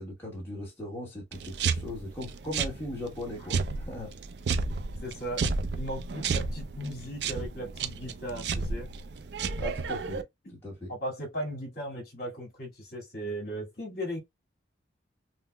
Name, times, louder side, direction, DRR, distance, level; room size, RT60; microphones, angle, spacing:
voice 1, 0.0-4.1 9.6-10.2 10.5-10.9, left 1 dB, 15° left, 1.2 m, -38 dB
sound 1, 1.3-10.2, right 4 dB, 65° right, 0.4 m, -32 dB
voice 2, 5.0-5.5 5.8-8.9 10.9-14.2, equal, 50° left, 2.2 m, -37 dB
5.5 x 2.0 x 2.2 m
head